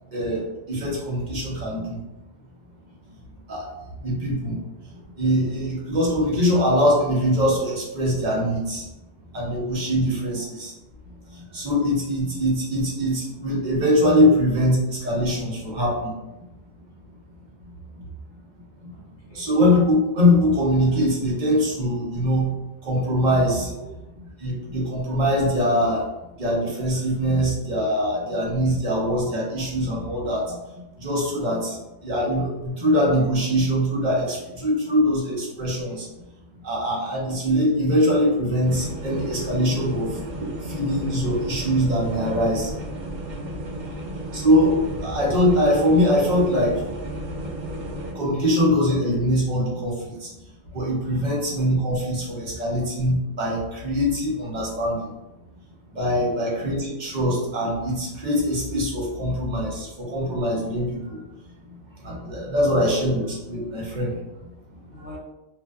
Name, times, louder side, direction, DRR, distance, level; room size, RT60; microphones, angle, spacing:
voice 1, 0.1-0.4 0.7-2.0 3.5-3.7 4.0-4.6 5.2-8.8 9.3-10.7 11.5-14.8 15.0-16.1 19.3-22.5 22.8-23.7 24.4-26.0 26.4-30.5 31.0-31.8 32.0-36.1 36.6-40.1 40.6-42.7 44.3-44.7 45.0-46.8 48.1-50.3 50.7-55.0 55.9-61.2 62.0-64.1, equal, 45° right, -5 dB, 0.7 m, -22 dB
voice 2, 9.9-10.4 18.9-19.0 19.3-19.6 43.4-44.1 51.0-51.3 56.1-56.4 64.9-65.2, left 3 dB, 65° left, -6 dB, 1.0 m, -44 dB
sound 1, 38.6-48.1, right 1 dB, 75° right, 0.4 m, -33 dB
2.6 x 2.1 x 2.3 m, 0.98 s
omnidirectional pair, 1.4 m